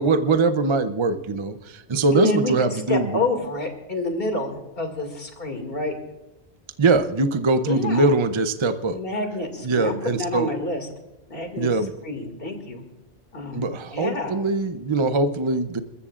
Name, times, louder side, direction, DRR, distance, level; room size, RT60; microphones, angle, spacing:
voice 1, 0.0-3.1 6.8-9.0 9.6-10.5 11.6-11.9 13.5-15.8, right 3 dB, 30° right, 10 dB, 0.6 m, -22 dB
voice 2, 2.1-5.9 7.7-8.1 8.9-10.9 11.3-11.7 12.0-12.8 13.3-13.7 13.9-14.4, left 2 dB, 55° left, 4 dB, 2.6 m, -28 dB
29.0 x 14.0 x 2.5 m, 0.99 s
omnidirectional pair, 1.2 m